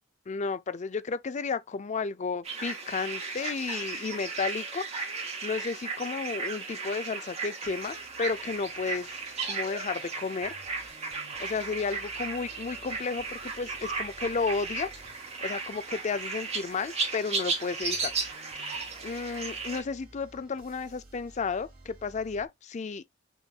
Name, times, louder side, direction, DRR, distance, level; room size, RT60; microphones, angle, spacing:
voice 1, 0.3-4.9 5.4-9.1 9.4-10.5 11.4-14.9 15.4-18.1 18.6-23.1, left 4 dB, 35° left, 0.4 m, -33 dB
sound 1, 2.4-19.8, right 4 dB, 35° right, 1.7 m, -35 dB
sound 2, 7.6-22.5, right 2 dB, 50° right, 2.1 m, -55 dB
6.2 x 3.7 x 2.3 m
head